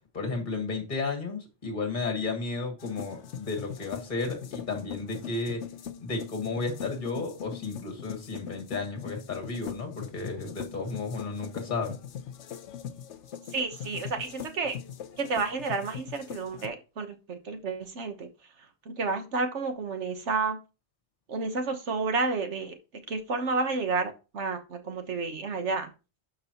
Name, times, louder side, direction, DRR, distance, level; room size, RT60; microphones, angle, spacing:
voice 1, 0.1-5.6 6.0-11.9, left 3 dB, 45° left, 1.8 m, -33 dB
sound 1, 2.8-16.7, left 8 dB, 75° left, 1.0 m, -41 dB
voice 2, 13.5-14.8 15.2-18.3 18.9-20.6 21.3-22.7 23.1-25.9, right 4 dB, 70° right, 1.4 m, -30 dB
12.5 x 4.7 x 3.0 m
omnidirectional pair, 1.2 m